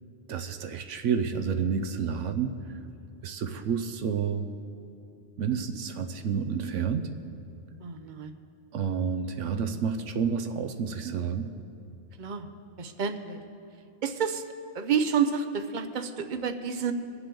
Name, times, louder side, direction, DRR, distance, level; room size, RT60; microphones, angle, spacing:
voice 1, 0.3-2.8 3.2-4.5 5.4-7.1 8.7-11.5, right 6 dB, 70° right, 7 dB, 1.0 m, -30 dB
voice 2, 7.8-8.4 12.2-12.5 12.8-13.4 14.0-14.4 14.7-16.9, right 6 dB, 45° right, 8 dB, 0.7 m, -29 dB
23.0 x 7.8 x 3.8 m, 2.6 s
omnidirectional pair, 1.3 m